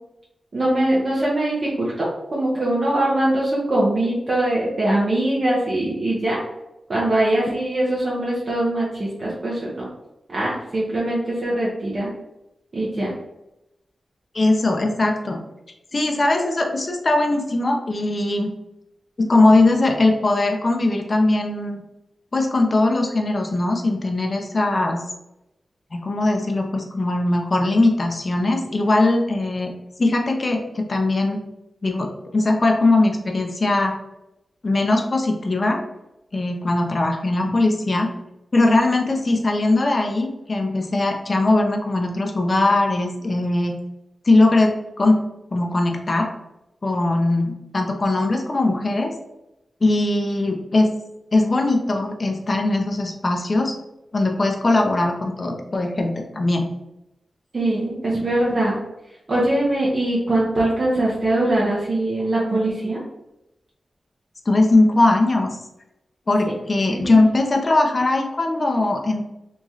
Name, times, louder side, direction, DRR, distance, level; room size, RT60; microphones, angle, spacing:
voice 1, 0.5-2.1 2.3-6.4 6.9-9.9 10.3-12.1 12.7-13.1 57.5-58.8 59.3-63.0 66.4-66.5 66.9-67.1, right 1 dB, 50° right, -6 dB, 0.9 m, -22 dB
voice 2, 14.3-15.4 15.9-18.5 19.2-21.8 22.3-25.0 25.9-29.7 30.0-31.4 31.8-33.9 34.6-35.8 36.3-38.1 38.5-43.8 44.3-45.2 45.5-46.3 46.8-49.1 49.8-50.9 51.3-53.7 54.1-56.7 64.5-65.6 66.3-69.3, left 2 dB, 40° left, 2 dB, 0.5 m, -20 dB
3.0 x 2.8 x 3.6 m, 0.90 s
wide cardioid pair, 95°, 0 cm